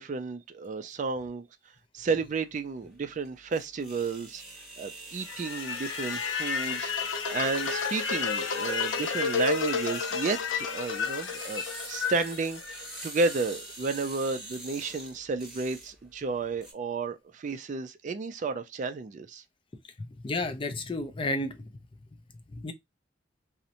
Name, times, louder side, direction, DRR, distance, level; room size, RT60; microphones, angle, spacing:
voice 1, 0.0-1.5 1.9-4.4 4.8-19.4, right 4 dB, 40° right, 0.3 m, -32 dB
sound 1, 2.0-16.7, right 1 dB, 5° right, 1.3 m, -45 dB
sound 2, 5.2-13.3, left 5 dB, 80° left, 0.5 m, -31 dB
voice 2, 20.2-21.7 22.5-22.7, left 2 dB, 25° left, 0.4 m, -31 dB
2.5 x 2.1 x 2.7 m
head